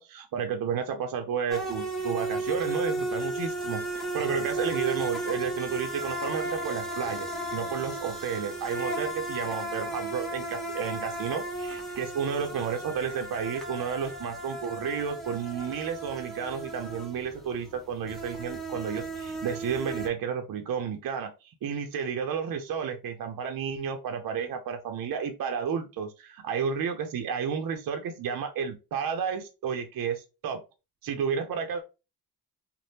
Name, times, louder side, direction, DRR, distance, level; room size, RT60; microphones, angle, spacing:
voice 1, 0.0-30.6 31.0-31.8, right 7 dB, 65° right, 5 dB, 0.6 m, -32 dB
sound 1, 1.5-20.1, right 2 dB, ahead, 0.6 m, -34 dB
2.7 x 2.1 x 3.3 m, 0.29 s
cardioid pair, 125°, 38 cm